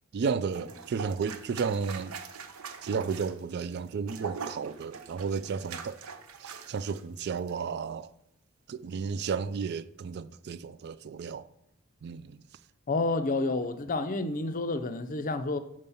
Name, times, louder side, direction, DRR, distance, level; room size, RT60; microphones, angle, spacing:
voice 1, 0.1-2.2 2.8-6.0 6.4-8.1 8.7-11.5 12.0-12.4, right 5 dB, 50° right, 0.3 m, -33 dB
sound 1, 0.5-7.0 7.3-7.5, right 6 dB, 85° right, 0.8 m, -43 dB
voice 2, 12.9-15.6, left 2 dB, 40° left, 0.6 m, -29 dB
7.0 x 5.2 x 5.4 m
head